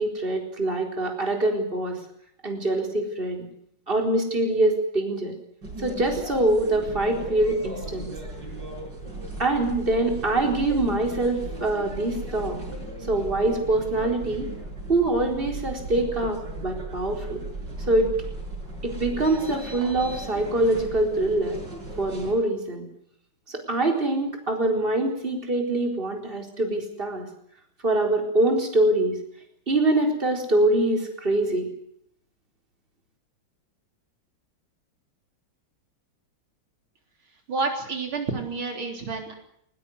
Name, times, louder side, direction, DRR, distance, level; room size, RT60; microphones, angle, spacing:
voice 1, 0.0-2.0 2.4-3.5 3.9-5.4 5.8-8.1 9.4-12.6 13.0-14.5 14.9-17.4 17.9-18.1 18.8-21.6 22.0-22.8 23.5-27.3 27.8-29.1 29.7-31.7, right 2 dB, 25° right, 2 dB, 4.5 m, -24 dB
sound 1, 5.6-22.3, right 2 dB, 55° right, 7.0 m, -37 dB
voice 2, 37.5-39.3, right 3 dB, 80° right, 3 dB, 4.4 m, -29 dB
20.5 x 20.5 x 8.0 m, 0.71 s
omnidirectional pair, 2.2 m